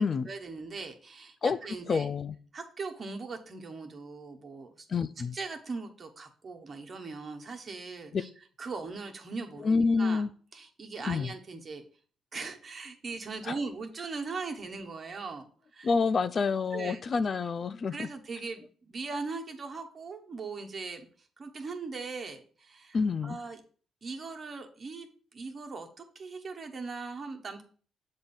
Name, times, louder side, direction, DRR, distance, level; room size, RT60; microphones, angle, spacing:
voice 1, 0.0-2.1 2.5-4.9 5.3-8.3 8.6-10.2 10.5-11.8 12.3-15.5 15.7-15.9 16.7-17.0 17.9-21.1 21.4-23.0 23.2-23.6 24.0-27.6, right 4 dB, 40° right, 1.1 m, -40 dB
voice 2, 1.9-2.3 4.9-5.4 8.1-8.2 9.6-10.3 11.1-11.3 13.4-13.5 15.8-18.1 22.9-23.4, left 4 dB, 45° left, 0.3 m, -28 dB
7.3 x 2.6 x 5.5 m
supercardioid pair, 70°, 0 cm